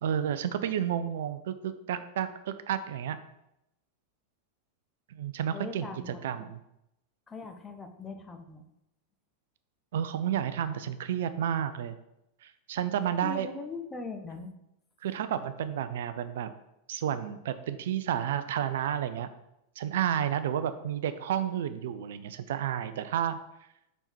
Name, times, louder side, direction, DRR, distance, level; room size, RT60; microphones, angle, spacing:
voice 1, 0.0-3.2 5.1-6.6 9.9-12.0 12.4-13.5 15.0-16.5 16.9-19.3 19.8-23.4, right 9 dB, 55° right, 11 dB, 0.4 m, -31 dB
voice 2, 5.5-6.5 7.3-8.6 13.2-14.5, left 3 dB, 15° left, 5 dB, 0.9 m, -40 dB
5.4 x 5.4 x 4.6 m, 0.84 s
figure-of-eight pair, 90°, 0 cm